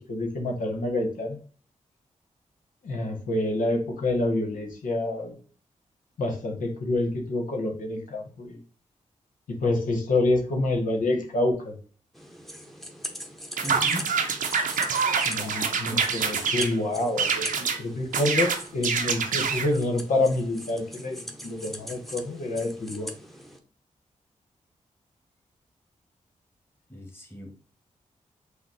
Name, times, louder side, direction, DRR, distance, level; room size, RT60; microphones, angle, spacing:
voice 1, 0.0-1.4 2.8-5.3 6.2-8.6 9.6-11.8 15.2-23.1, left 2 dB, 85° left, 2 dB, 1.0 m, -27 dB
sound 1, 12.1-23.6, equal, ahead, 0.9 m, -42 dB
voice 2, 13.6-14.1 15.3-16.0 26.9-27.5, equal, 15° left, 1 dB, 1.5 m, -38 dB
sound 2, 13.6-16.7 17.2-17.8 18.1-19.7, right 6 dB, 85° right, 0.7 m, -26 dB
5.9 x 2.0 x 4.0 m, 0.42 s
cardioid pair, 55°, 13 cm